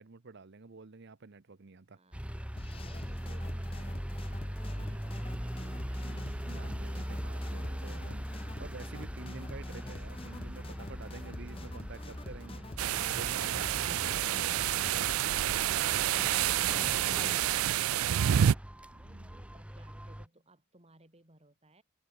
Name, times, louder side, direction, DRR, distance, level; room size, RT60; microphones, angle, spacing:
voice 1, 0.0-2.0 6.0-12.7 13.1-15.8 18.9-19.5, right 3 dB, 55° right, 0.8 m, -49 dB
voice 2, 1.9-2.2 2.8-6.3 19.3-21.8, right 1 dB, 30° right, 4.8 m, -61 dB
sound 1, 2.1-20.3, equal, 5° right, 0.9 m, -41 dB
sound 2, 2.6-17.3, left 2 dB, 25° left, 0.8 m, -45 dB
sound 3, 12.8-18.5, right 11 dB, 80° right, 0.4 m, -28 dB
head